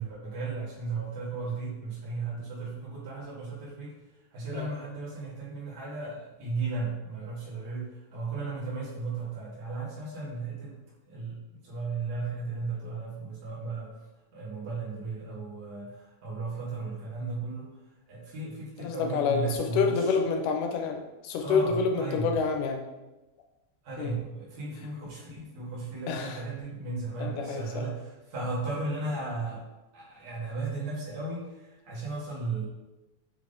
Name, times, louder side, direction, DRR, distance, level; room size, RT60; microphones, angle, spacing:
voice 1, 0.0-3.9 4.3-10.8 11.1-13.9 14.3-17.7 18.1-20.2 21.4-22.3 23.8-29.6 29.9-32.6, right 3 dB, 75° right, -6 dB, 0.9 m, -35 dB
voice 2, 18.8-22.8 24.0-24.2 26.1-26.4 27.2-27.9, left 5 dB, 90° left, 4 dB, 2.1 m, -28 dB
5.3 x 3.4 x 2.5 m, 1.0 s
omnidirectional pair, 3.6 m